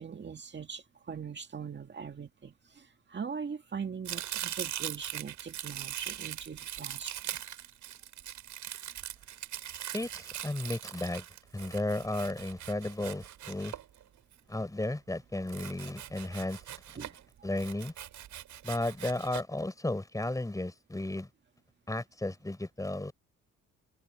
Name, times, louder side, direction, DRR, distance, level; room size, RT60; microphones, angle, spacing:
voice 1, 0.0-7.2 17.0-17.1, right 6 dB, 35° right, 2.1 m, -41 dB
Domestic sounds home sounds, 4.1-14.3 15.5-17.2 17.6-19.4, right 11 dB, 75° right, 7.0 m, -41 dB
voice 2, 9.9-11.2 11.5-13.7 14.5-16.6 17.4-17.9 18.6-21.3 21.9-23.1, left 1 dB, 10° left, 4.9 m, -34 dB
cardioid pair, 90°, 30 cm